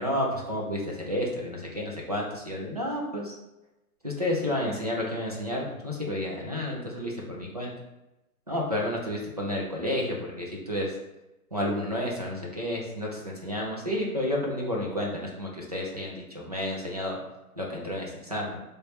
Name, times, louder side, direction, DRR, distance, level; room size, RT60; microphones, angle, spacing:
voice 1, 0.0-3.3 4.0-7.7 8.5-10.9 11.5-17.2 17.6-18.6, left 1 dB, 30° right, -3 dB, 0.4 m, -31 dB
4.4 x 3.2 x 3.0 m, 0.96 s
hypercardioid pair, 170°, 45 cm